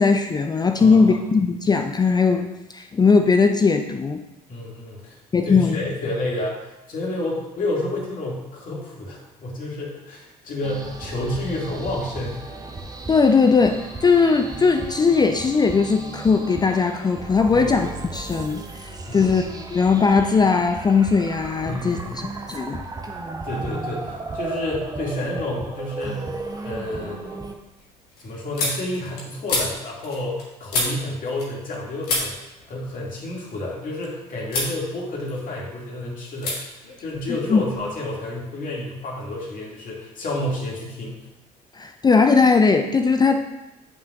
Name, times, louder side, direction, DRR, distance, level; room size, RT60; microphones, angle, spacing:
voice 1, 0.0-4.2 5.3-5.8 13.1-19.5 19.7-22.2 22.5-22.8 37.5-37.6 41.7-43.5, left 4 dB, 20° left, 6 dB, 0.5 m, -19 dB
voice 2, 0.8-1.1 4.5-5.2 5.4-12.4 17.5-17.7 19.0-19.4 21.6-22.3 23.4-26.3 26.6-27.2 28.2-32.4 32.7-36.6 37.0-41.2, left 1 dB, 45° left, -3 dB, 2.3 m, -30 dB
sound 1, 10.6-27.5, right 3 dB, 20° right, 0.9 m, -35 dB
sound 2, 25.8-26.3 26.7-31.8 32.0-34.1 34.5-34.8 35.1-35.9 36.4-36.6 36.8-37.9, left 2 dB, 75° left, 1.5 m, -30 dB
9.1 x 5.7 x 2.5 m, 0.99 s
figure-of-eight pair, 55°, 20 cm